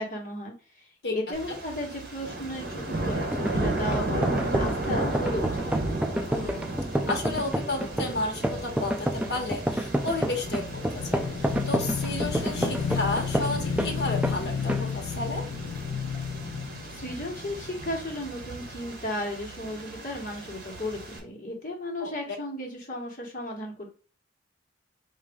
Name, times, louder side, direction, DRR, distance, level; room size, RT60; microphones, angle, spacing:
voice 1, 0.0-5.7 16.9-23.9, left 1 dB, 45° left, 0 dB, 1.3 m, -35 dB
sound 1, 1.3-21.2, right 2 dB, 50° right, 1.0 m, -34 dB
sound 2, 3.3-13.9 14.2-14.4 14.7-14.9, equal, 5° right, 0.3 m, -29 dB
voice 2, 6.3-6.8 7.1-15.4 22.0-22.1, left 2 dB, 60° left, 3 dB, 1.2 m, -32 dB
Motorcycle / Engine, 9.6-18.1, left 6 dB, 85° left, 0.4 m, -33 dB
5.0 x 2.6 x 3.5 m, 0.36 s
head